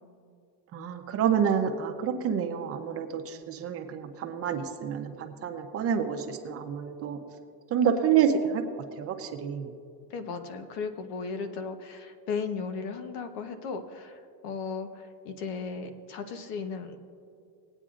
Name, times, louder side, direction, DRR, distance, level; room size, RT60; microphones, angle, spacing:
voice 1, 0.7-7.2 7.7-8.6 9.0-9.7, right 8 dB, 30° right, 4 dB, 0.7 m, -28 dB
voice 2, 10.1-17.0, left 5 dB, 70° left, 8 dB, 1.2 m, -36 dB
19.5 x 8.9 x 2.5 m, 2.4 s
supercardioid pair, 145°, 47 cm